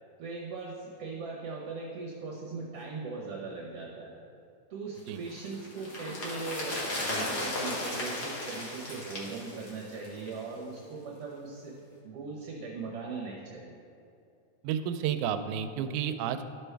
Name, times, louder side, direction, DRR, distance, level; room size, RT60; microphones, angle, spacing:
voice 1, 0.2-4.2 4.7-11.8 12.0-13.8, right 4 dB, 60° right, -4 dB, 1.8 m, -39 dB
sound 1, 5.1-10.5 10.8-10.9, left 1 dB, 40° left, 1.6 m, -36 dB
voice 2, 14.6-16.4, right 9 dB, 85° right, 8 dB, 2.0 m, -31 dB
12.5 x 6.2 x 3.3 m, 2.6 s
omnidirectional pair, 3.4 m